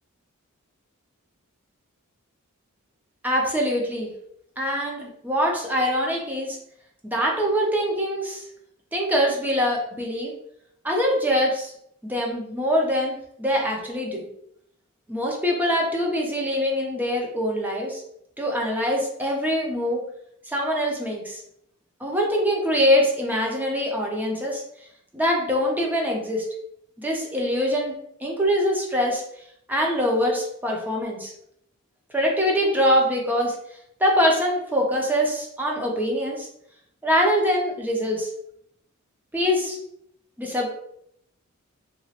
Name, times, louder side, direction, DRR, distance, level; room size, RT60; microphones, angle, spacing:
voice 1, 3.2-4.1 4.6-6.6 7.0-8.5 8.9-10.3 10.8-11.7 12.0-14.3 15.1-18.0 18.4-20.0 20.5-21.4 22.0-24.6 25.1-26.4 27.0-27.9 28.2-29.2 29.7-31.3 32.1-33.6 34.0-36.5 37.0-38.3 39.3-39.8 40.4-40.7, equal, 10° right, -1 dB, 0.6 m, -23 dB
2.9 x 2.4 x 2.8 m, 0.73 s
head